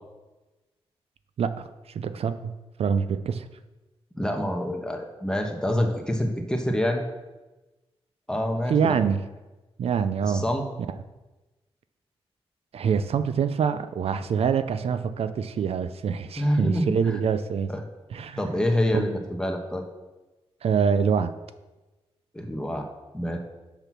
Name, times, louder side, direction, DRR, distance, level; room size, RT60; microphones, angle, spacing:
voice 1, 1.4-3.5 8.7-9.2 9.8-10.4 10.9-11.0 12.7-17.7 18.1-18.4 18.9-19.1 20.6-21.3, right 6 dB, 70° right, 12 dB, 0.4 m, -25 dB
voice 2, 4.2-7.0 8.3-9.0 10.3-10.7 16.4-17.2 17.7-17.8 18.4-19.8 22.3-22.9 23.1-23.4, equal, 5° left, 3 dB, 1.2 m, -26 dB
6.7 x 6.0 x 6.0 m, 1.1 s
cardioid pair, 100°, 11 cm